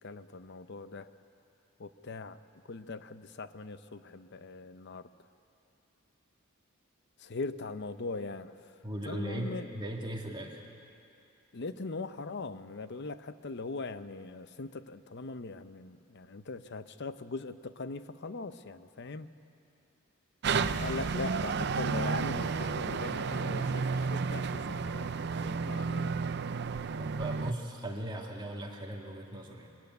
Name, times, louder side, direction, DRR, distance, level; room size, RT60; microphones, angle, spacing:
voice 1, 0.0-1.1 1.8-2.4 2.6-5.1 7.2-8.7 9.1-9.7 11.5-19.3 20.6-25.1 25.4-26.4, left 3 dB, 55° left, 12 dB, 0.7 m, -40 dB
voice 2, 8.8-10.6 20.5-20.8 27.0-29.7, right 1 dB, 25° right, 0 dB, 2.1 m, -38 dB
sound 1, 20.4-27.5, right 5 dB, 55° right, 0.5 m, -32 dB
23.0 x 13.5 x 9.4 m, 2.6 s
head